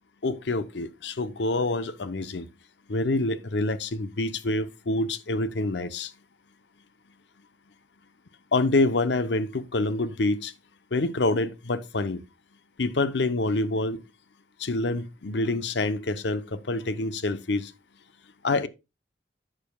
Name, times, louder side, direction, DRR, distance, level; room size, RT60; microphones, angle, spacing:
voice 1, 0.2-2.5 2.9-6.1 8.5-10.5 10.9-12.2 12.8-14.0 14.6-17.7 18.4-18.7, left 2 dB, 85° left, 0.8 m, -26 dB
11.5 x 7.4 x 2.3 m
head